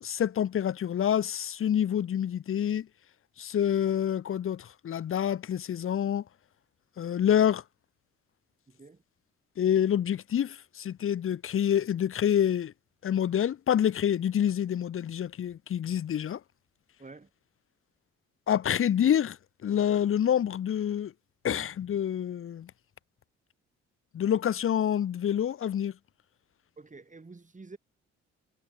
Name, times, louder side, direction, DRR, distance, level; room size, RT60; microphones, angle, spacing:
voice 1, 0.0-2.9 3.4-6.2 7.0-7.6 9.6-12.7 13.0-16.4 18.5-19.4 19.6-21.1 21.4-22.7 24.1-25.9, left 9 dB, 40° left, 0.7 m, -27 dB
voice 2, 8.7-9.0 17.0-17.3 26.8-27.8, right 3 dB, 25° right, 2.5 m, -48 dB
hypercardioid pair, 50°, 32 cm